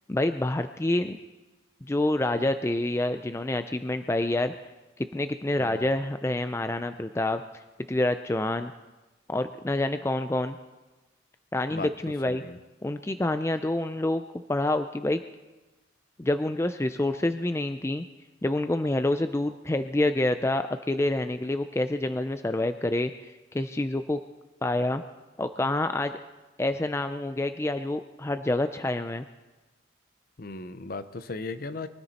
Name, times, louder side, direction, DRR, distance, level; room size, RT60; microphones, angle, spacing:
voice 1, 0.1-1.2 1.9-4.5 5.0-7.4 7.9-8.7 9.3-10.6 11.5-12.4 12.8-14.2 14.5-15.2 16.2-18.0 18.4-24.2 24.6-25.0 25.4-26.1 26.6-29.3, left 1 dB, 15° left, 9 dB, 0.4 m, -27 dB
voice 2, 5.6-5.9 11.7-11.9 12.3-12.6 30.4-31.9, left 3 dB, 50° left, 12 dB, 0.7 m, -37 dB
24.0 x 13.0 x 4.2 m, 1.1 s
head